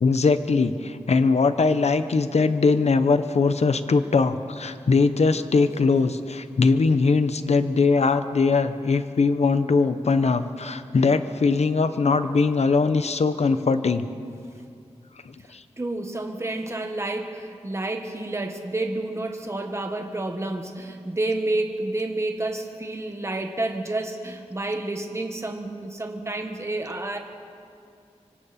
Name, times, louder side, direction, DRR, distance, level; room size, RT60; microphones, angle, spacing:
voice 1, 0.0-14.1 15.2-15.6, left 4 dB, 70° left, 10 dB, 1.0 m, -21 dB
voice 2, 15.8-27.2, right 2 dB, 25° right, 4 dB, 1.6 m, -29 dB
25.5 x 25.0 x 4.4 m, 2.4 s
wide cardioid pair, 105°, 11 cm